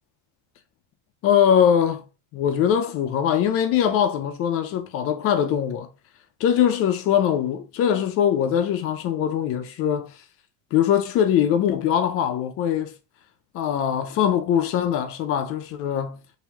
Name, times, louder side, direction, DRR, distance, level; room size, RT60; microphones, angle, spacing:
voice 1, 1.2-2.0 2.3-5.9 6.4-10.1 10.7-12.9 13.5-16.2, left 9 dB, 35° left, 0.4 m, -22 dB
3.0 x 2.7 x 3.3 m
cardioid pair, 155°, 40 cm